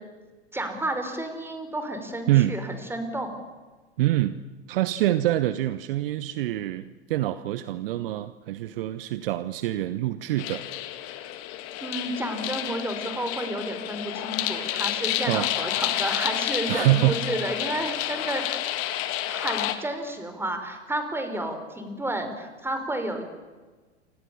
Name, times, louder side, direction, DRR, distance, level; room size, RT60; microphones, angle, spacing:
voice 1, 0.5-3.3 11.8-18.8 19.3-23.2, right 1 dB, 5° right, 6 dB, 5.3 m, -31 dB
voice 2, 2.3-2.6 4.0-4.4 4.7-10.7 15.3-15.5 16.7-17.2, right 15 dB, 55° right, 14 dB, 1.2 m, -25 dB
sound 1, 10.4-19.7, left 13 dB, 40° left, 2.6 m, -30 dB
28.5 x 26.0 x 7.2 m, 1.3 s
figure-of-eight pair, 90°, 34 cm